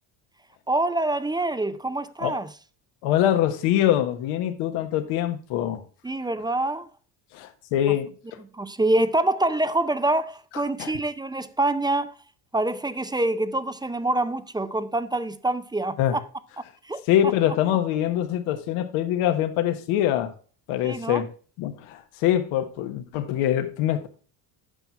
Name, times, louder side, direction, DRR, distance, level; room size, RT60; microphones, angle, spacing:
voice 1, 0.7-2.5 6.0-6.9 8.5-12.2 12.5-16.2 16.8-17.0 20.8-21.2, right 2 dB, 10° right, 0.5 m, -25 dB
voice 2, 3.0-5.8 7.3-8.4 10.8-10.9 16.0-16.2 17.1-20.3 20.7-21.3 21.6-24.1, left 11 dB, 80° left, 1.4 m, -24 dB
9.0 x 5.8 x 4.5 m
supercardioid pair, 90°, 49 cm